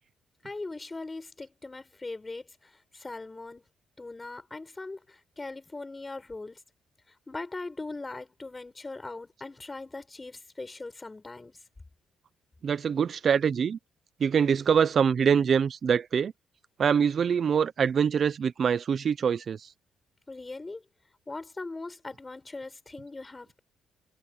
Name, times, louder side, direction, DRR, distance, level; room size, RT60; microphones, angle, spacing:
voice 1, 0.4-3.6 4.0-6.6 7.1-11.5 20.3-20.8 21.3-23.6, left 3 dB, 20° left, 6.0 m, -40 dB
voice 2, 12.6-13.8 14.2-16.3 16.8-19.7, right 7 dB, 50° right, 0.6 m, -24 dB
cardioid pair, 90°, 0 cm